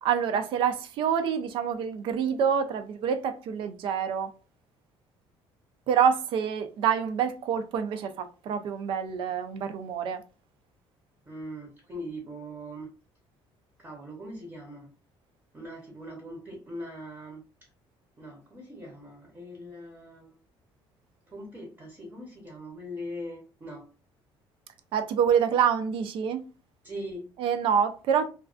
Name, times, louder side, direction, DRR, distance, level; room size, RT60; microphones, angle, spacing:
voice 1, 0.0-4.3 5.9-10.2 24.9-26.4 27.4-28.3, right 7 dB, 60° right, 0.4 m, -26 dB
voice 2, 11.3-12.9 13.8-14.9 15.5-17.4 18.2-20.3 21.3-23.9 26.8-27.3, equal, 20° right, 0.7 m, -41 dB
2.4 x 2.2 x 2.3 m
cardioid pair, 145°, 10 cm